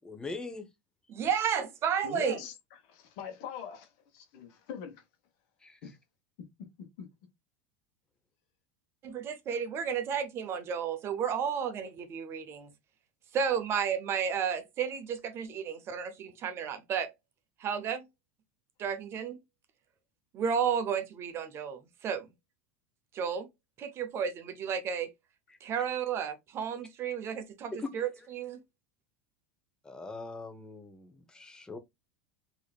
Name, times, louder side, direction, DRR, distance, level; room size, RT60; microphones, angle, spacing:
voice 1, 0.0-0.7 5.6-5.8 25.5-25.6 27.8-27.9 28.2-28.3 29.8-31.8, left 3 dB, 10° left, 1.0 m, -41 dB
voice 2, 1.1-2.4 9.0-12.7 13.3-17.1 17.6-18.1 18.8-19.4 20.3-22.3 23.1-23.5 23.8-25.1 25.6-28.1 28.3-28.6, right 7 dB, 40° right, 0.8 m, -32 dB
voice 3, 2.0-2.5 2.8-5.0 5.8-5.9 6.6-7.1, left 7 dB, 65° left, 1.2 m, -43 dB
4.8 x 2.9 x 2.3 m
hypercardioid pair, 105°, 7 cm